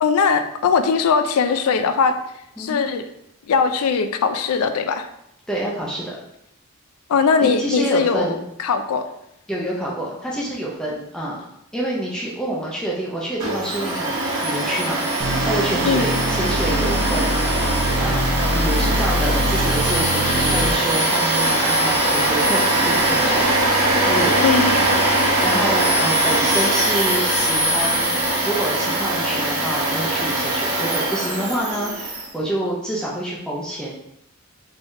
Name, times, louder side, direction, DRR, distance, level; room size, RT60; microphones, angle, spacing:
voice 1, 0.0-2.1 2.6-3.0 3.5-5.1 7.1-9.0 15.8-16.1 24.4-25.0, left 5 dB, 80° left, 9 dB, 0.4 m, -20 dB
voice 2, 5.5-6.2 7.4-8.4 9.5-11.4 11.7-15.0 15.4-17.4 18.0-23.5 24.1-24.4 25.4-34.0, right 1 dB, 5° left, -5 dB, 0.5 m, -27 dB
Domestic sounds home sounds, 13.4-32.3, right 1 dB, 75° right, 1.2 m, -21 dB
sound 1, 15.2-21.0, right 1 dB, 55° right, 0.6 m, -23 dB
3.6 x 3.3 x 2.6 m, 0.79 s
head